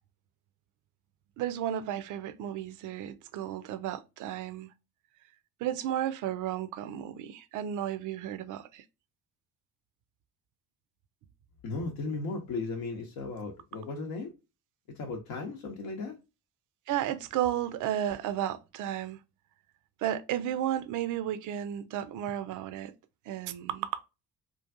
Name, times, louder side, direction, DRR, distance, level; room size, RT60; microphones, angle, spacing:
voice 1, 1.4-4.7 5.6-8.8 16.9-19.2 20.0-22.9 23.3-23.9, right 11 dB, 45° right, 0.5 m, -33 dB
voice 2, 11.6-14.3 14.9-16.2, left 3 dB, 50° left, 0.8 m, -36 dB
3.8 x 2.4 x 2.4 m
figure-of-eight pair, 45°, 45 cm